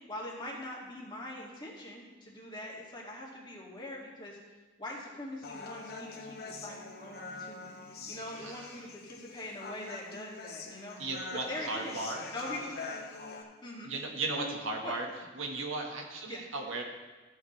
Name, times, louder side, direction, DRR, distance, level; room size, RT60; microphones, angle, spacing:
voice 1, 0.1-4.4 4.8-7.7 8.1-11.0 11.5-12.0 12.3-12.9 13.6-13.9 14.4-14.6 14.8-14.9 16.3-16.4, left 1 dB, 25° left, -4 dB, 2.3 m, -42 dB
Human voice, 5.4-13.4, left 3 dB, 55° left, 1.2 m, -44 dB
voice 2, 8.0-8.8 11.0-12.2 13.8-15.1 15.4-16.8, right 3 dB, 85° right, 1 dB, 1.5 m, -36 dB
14.5 x 8.4 x 3.3 m, 1.3 s
head